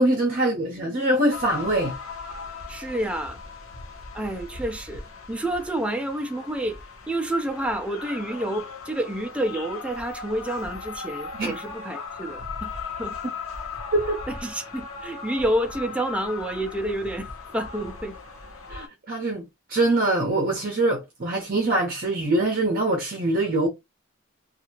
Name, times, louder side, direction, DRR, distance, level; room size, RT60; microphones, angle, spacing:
voice 1, 0.0-1.9 11.3-11.6 13.9-14.2 18.7-23.7, right 2 dB, 45° right, 0.7 m, -23 dB
sound 1, 1.3-18.9, left 4 dB, 85° left, 0.8 m, -38 dB
voice 2, 2.7-3.4 4.1-5.0 5.3-6.8 7.1-12.7 13.0-13.2 14.3-18.2, right 1 dB, 5° right, 0.4 m, -29 dB
2.7 x 2.5 x 2.9 m
head